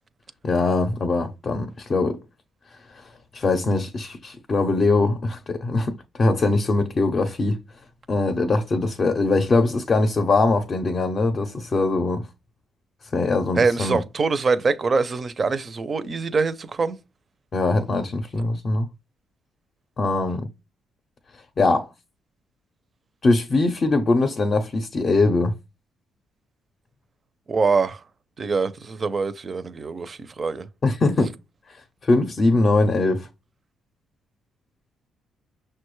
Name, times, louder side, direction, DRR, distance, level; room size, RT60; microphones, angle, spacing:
voice 1, 0.4-2.2 2.9-7.6 8.1-12.3 13.1-14.0 17.5-18.9 20.0-20.5 21.6-21.9 23.2-25.5 30.8-31.3 31.7-33.3, left 3 dB, 40° left, 0.5 m, -22 dB
voice 2, 13.6-17.0 27.5-28.0 28.4-30.7, right 4 dB, 40° right, 0.5 m, -24 dB
5.9 x 2.2 x 3.1 m
cardioid pair, 90°, 0 cm